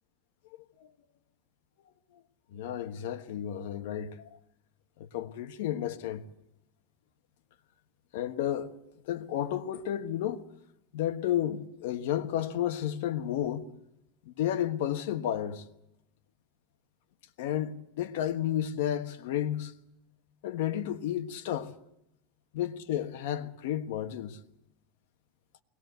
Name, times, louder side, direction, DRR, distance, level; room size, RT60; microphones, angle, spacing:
voice 1, 2.5-4.4 5.0-6.2 8.1-8.7 9.1-10.4 10.9-13.7 14.2-15.6 17.4-19.7 20.4-21.7 22.5-24.4, left 11 dB, 70° left, 1.4 m, -32 dB
21.5 x 19.5 x 8.1 m
supercardioid pair, 165°, 0 cm